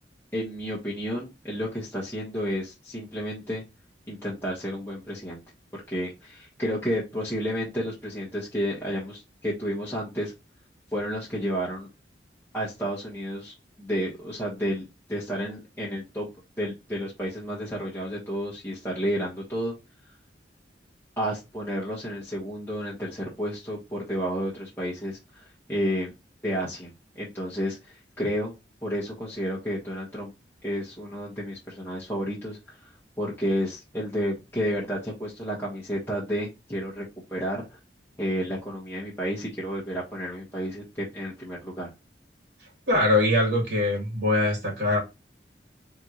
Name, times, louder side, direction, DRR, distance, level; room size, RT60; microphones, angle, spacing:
voice 1, 0.3-3.6 4.1-5.4 5.7-10.3 10.9-11.9 12.5-16.3 16.6-19.7 21.2-26.1 26.4-26.9 27.1-28.5 28.8-30.3 30.6-32.9 33.2-37.6 38.2-41.9, equal, 10° left, 1.3 m, -31 dB
voice 2, 42.9-45.0, left 1 dB, 65° right, 2.3 m, -22 dB
3.8 x 3.4 x 3.0 m
head